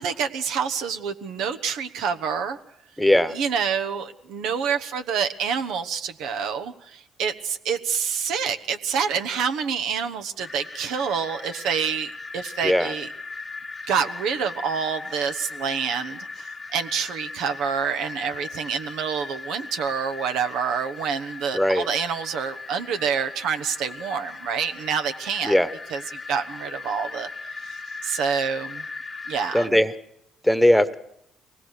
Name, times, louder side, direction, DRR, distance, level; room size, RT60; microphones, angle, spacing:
voice 1, 0.0-2.6 3.3-13.1 13.9-25.6 25.9-27.3 27.5-28.9 29.3-29.8, right 6 dB, 75° right, 8 dB, 1.0 m, -27 dB
voice 2, 3.0-3.3 12.6-12.9 21.5-21.9 25.4-25.7 29.5-29.9 30.4-31.0, left 1 dB, 5° left, 12 dB, 1.2 m, -19 dB
sound 1, 10.4-29.7, left 4 dB, 30° left, 1.2 m, -38 dB
23.0 x 19.0 x 6.7 m, 0.77 s
supercardioid pair, 60°, 0 cm